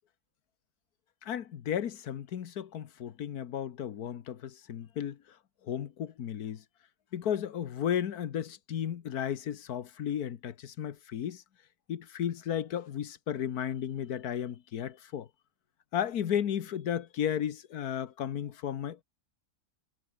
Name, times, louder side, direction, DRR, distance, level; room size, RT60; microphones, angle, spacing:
voice 1, 1.2-5.2 5.6-6.6 7.1-11.4 11.9-15.3 15.9-19.0, left 9 dB, 75° left, 1.6 m, -34 dB
omnidirectional pair, 1.6 m